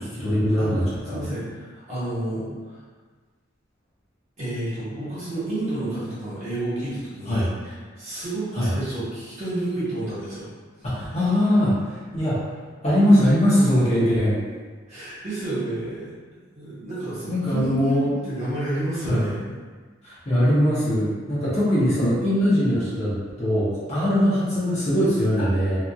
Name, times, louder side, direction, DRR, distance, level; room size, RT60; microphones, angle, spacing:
voice 1, 0.0-1.3 7.3-7.5 8.5-8.7 10.8-12.4 12.8-14.3 17.3-18.2 19.0-19.3 20.0-25.8, equal, 35° left, -9 dB, 0.7 m, -21 dB
voice 2, 1.1-2.5 4.4-10.5 14.9-16.1 16.5-19.5 25.4-25.5, right 1 dB, 35° right, -11 dB, 1.3 m, -30 dB
2.9 x 2.5 x 2.2 m, 1.5 s
head